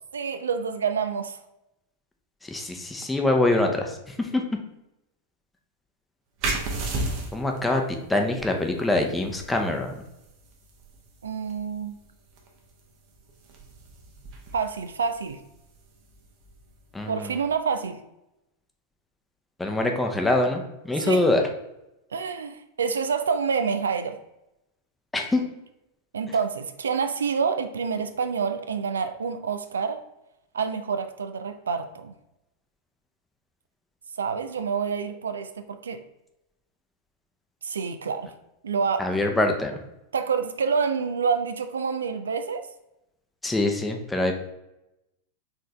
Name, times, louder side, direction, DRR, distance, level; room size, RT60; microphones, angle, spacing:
voice 1, 0.1-1.4 11.2-12.0 14.5-15.4 17.1-18.0 21.0-21.2 22.1-24.2 26.1-30.0 30.5-32.1 34.2-36.0 37.6-38.3 38.6-39.2 40.1-42.6, right 6 dB, 70° right, 9 dB, 0.3 m, -27 dB
voice 2, 2.5-4.4 7.3-9.9 16.9-17.3 19.6-21.4 25.1-25.4 39.0-39.8 43.4-44.3, left 2 dB, 10° left, 3 dB, 0.7 m, -24 dB
sound 1, 6.4-17.7, right 2 dB, 40° right, 0.9 m, -37 dB
4.4 x 3.7 x 3.2 m, 0.90 s
figure-of-eight pair, 90°, 0 cm